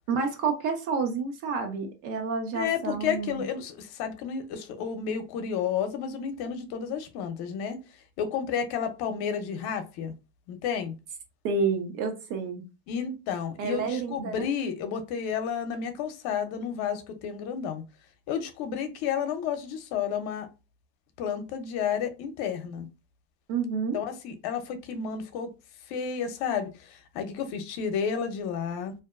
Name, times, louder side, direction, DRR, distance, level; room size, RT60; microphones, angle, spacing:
voice 1, 0.1-3.4 11.4-12.6 13.6-14.5 23.5-24.0, right 5 dB, 75° right, 0.9 m, -29 dB
voice 2, 2.5-7.8 8.2-10.1 10.5-10.9 12.9-17.8 18.3-20.5 21.2-22.9 23.9-25.5 25.9-28.9, left 7 dB, 65° left, 0.7 m, -31 dB
2.6 x 2.2 x 2.4 m
supercardioid pair, 95°, 41 cm